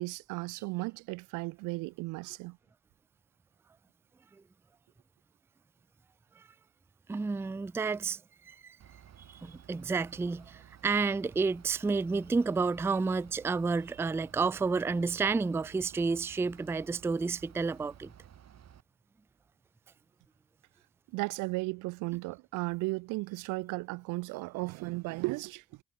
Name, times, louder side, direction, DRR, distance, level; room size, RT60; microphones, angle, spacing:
voice 1, 0.0-2.6 21.1-25.6, right 23 dB, 90° right, 1.4 m, -35 dB
voice 2, 7.1-8.2 8.5-8.8 9.4-18.1, right 4 dB, 10° right, 0.3 m, -30 dB
Bus / Idling, 8.8-18.8, right 9 dB, 60° right, 3.5 m, -55 dB
supercardioid pair, 65°, 30 cm